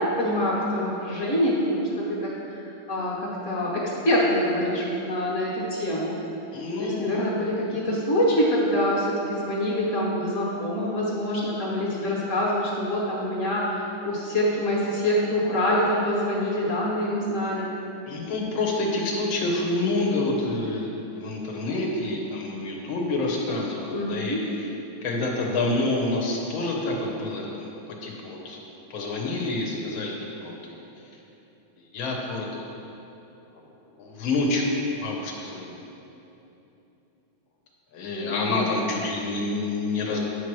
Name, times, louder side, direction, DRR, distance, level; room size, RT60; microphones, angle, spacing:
voice 1, 0.0-2.3 2.9-6.2 6.8-17.7 23.9-24.4 38.3-38.7, equal, 40° left, -5 dB, 1.5 m, -25 dB
voice 2, 6.5-7.8 18.1-20.9 21.1-24.4 25.0-27.7 28.0-28.6 28.9-30.1 30.4-30.9 31.8-32.9 34.0-34.6 35.0-35.9 37.9-40.2, left 2 dB, 75° left, -1 dB, 1.7 m, -28 dB
9.1 x 3.2 x 6.0 m, 2.9 s
omnidirectional pair, 2.2 m